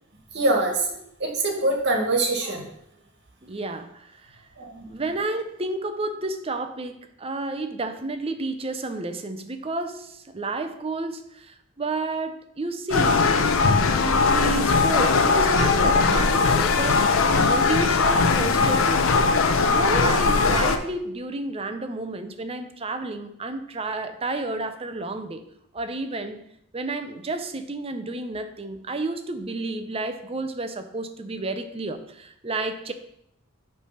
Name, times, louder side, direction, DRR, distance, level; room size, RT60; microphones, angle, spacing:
voice 1, 0.3-0.9 1.2-2.6 4.6-4.8, right 2 dB, 50° right, 2 dB, 1.5 m, -23 dB
voice 2, 3.4-4.4 4.9-13.3 14.0-17.0 17.4-19.1 19.7-25.4 25.7-26.4 26.7-32.9, right 2 dB, 25° right, 8 dB, 0.5 m, -31 dB
sound 1, 12.9-20.8, left 4 dB, 60° left, 0.6 m, -20 dB
8.2 x 3.3 x 5.7 m, 0.75 s
head